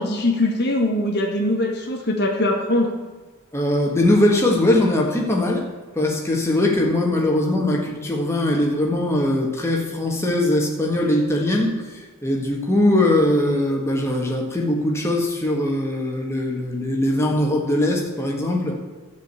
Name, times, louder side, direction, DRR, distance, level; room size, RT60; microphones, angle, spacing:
voice 1, 0.0-2.9, left 1 dB, 50° left, 0 dB, 1.8 m, -22 dB
voice 2, 3.5-5.7 5.9-18.8, left 1 dB, 10° left, -1 dB, 1.7 m, -21 dB
13.0 x 5.2 x 8.3 m, 1.3 s
head